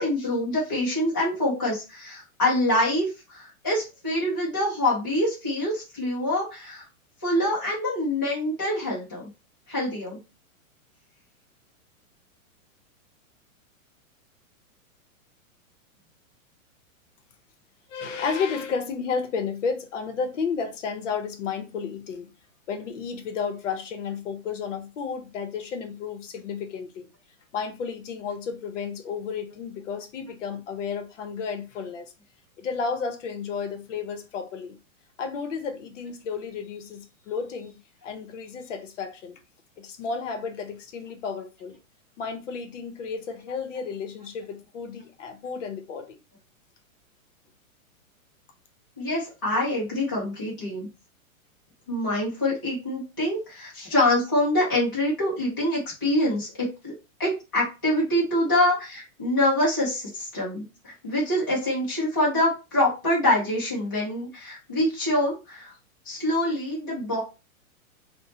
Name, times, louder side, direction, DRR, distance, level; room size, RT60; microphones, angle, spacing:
voice 1, 0.0-6.9 7.2-9.2 9.7-10.2 49.0-50.9 51.9-56.9 57.2-65.7 66.0-67.2, left 1 dB, 20° left, 0.3 m, -25 dB
voice 2, 17.9-22.3 22.7-27.1 27.5-32.1 32.6-34.8 35.2-37.8 38.0-39.4 39.8-41.8 42.2-46.2, left 5 dB, 60° left, 0.7 m, -32 dB
2.9 x 2.1 x 2.7 m
hypercardioid pair, 165°, 42 cm